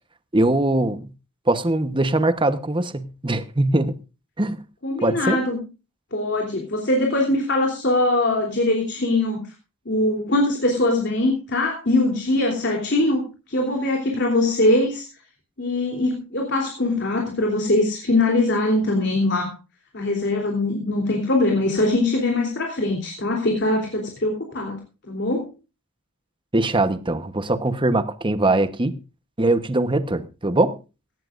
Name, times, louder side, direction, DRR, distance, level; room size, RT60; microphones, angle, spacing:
voice 1, 0.3-1.1 1.5-4.0 4.4-4.6 5.0-5.4 26.5-29.0 29.4-30.8, right 2 dB, 20° right, 1.0 m, -21 dB
voice 2, 4.8-5.6 6.1-9.4 9.8-15.0 15.6-19.5 19.9-24.8 25.1-25.5, left 2 dB, 50° left, 3.3 m, -22 dB
17.0 x 16.5 x 2.5 m
head